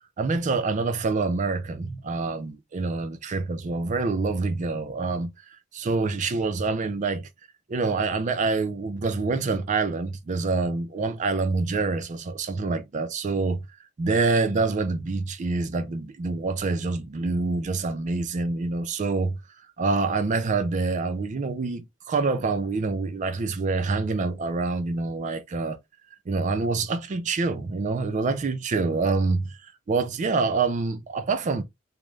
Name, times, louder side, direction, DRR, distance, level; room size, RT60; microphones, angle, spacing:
voice 1, 0.2-7.3 7.7-13.6 14.0-19.4 19.8-25.8 26.3-31.6, right 3 dB, 35° right, 0.3 m, -26 dB
2.4 x 2.0 x 3.1 m
head